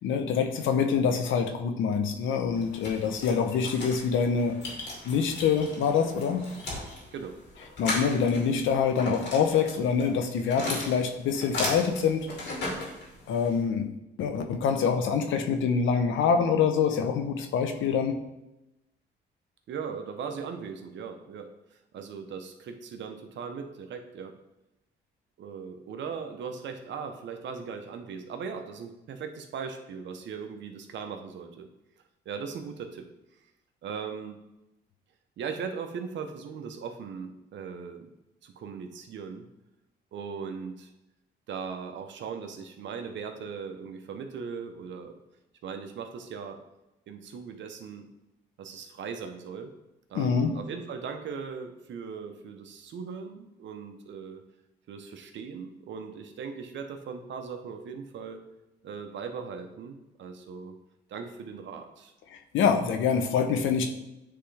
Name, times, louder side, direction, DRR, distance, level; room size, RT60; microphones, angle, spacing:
voice 1, 0.0-4.6 5.0-6.4 7.8-12.3 13.3-13.9 14.2-18.2 50.1-50.5 62.3-63.9, left 6 dB, 80° left, 6 dB, 0.8 m, -25 dB
sound 1, 2.5-13.6, left 2 dB, 65° left, 2.4 m, -37 dB
voice 2, 7.1-7.4 19.7-24.4 25.4-31.7 32.2-33.1 33.8-34.4 35.4-38.1 38.4-39.5 40.1-40.9 41.5-45.2 45.6-46.6 47.1-48.1 48.6-49.7 50.1-54.4 54.9-58.4 58.8-60.7 61.1-62.1, right 6 dB, 65° right, 5 dB, 0.9 m, -39 dB
9.9 x 3.4 x 3.3 m, 0.93 s
cardioid pair, 90°, 20 cm